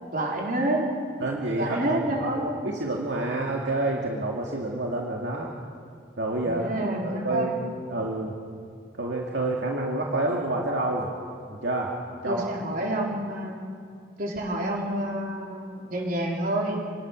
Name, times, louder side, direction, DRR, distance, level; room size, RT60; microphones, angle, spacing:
voice 1, 0.1-0.9 1.6-2.5 6.4-7.6 12.3-13.6 14.2-16.8, right 1 dB, 50° right, -2 dB, 4.7 m, -28 dB
voice 2, 1.2-5.5 6.2-6.7 7.0-8.4 9.0-11.1 11.5-11.9 12.2-12.4 12.7-12.9, right 2 dB, 80° right, -2 dB, 2.4 m, -29 dB
27.5 x 19.0 x 6.5 m, 2.2 s
head